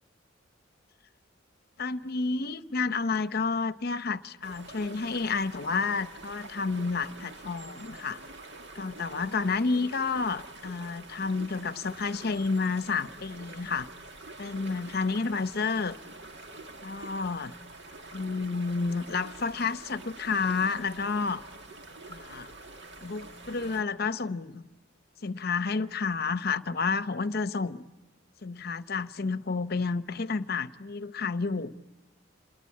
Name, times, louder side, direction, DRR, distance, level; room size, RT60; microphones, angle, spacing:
voice 1, 1.8-8.2 8.7-13.9 14.4-16.0 16.8-17.5 18.1-21.4 22.1-22.5 23.0-24.6 25.2-27.8 28.4-31.7, left 4 dB, 55° left, 0.8 m, -30 dB
sound 1, 4.4-23.8, right 2 dB, 60° right, 1.9 m, -46 dB
28.5 x 21.5 x 8.4 m
head